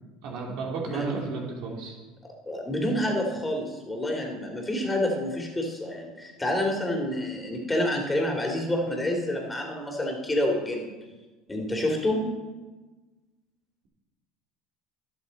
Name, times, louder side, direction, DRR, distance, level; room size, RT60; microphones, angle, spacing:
voice 1, 0.2-2.0, right 4 dB, 70° right, -1 dB, 2.9 m, -33 dB
voice 2, 0.8-1.3 2.2-10.9 11.5-12.3, left 1 dB, 10° left, 1 dB, 3.1 m, -28 dB
20.5 x 7.2 x 4.2 m, 1.3 s
supercardioid pair, 90°, 0 cm